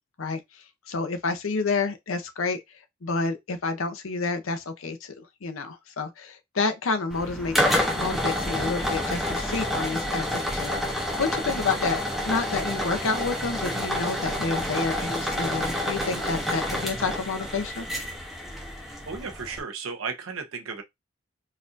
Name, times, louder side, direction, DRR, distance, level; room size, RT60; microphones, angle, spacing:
voice 1, 0.2-2.6 3.0-7.6 7.9-17.9, left 4 dB, 85° left, 0.6 m, -29 dB
sound 1, 7.1-19.6, left 1 dB, ahead, 0.6 m, -28 dB
voice 2, 18.8-20.8, right 5 dB, 90° right, 0.8 m, -35 dB
4.1 x 2.5 x 2.5 m
head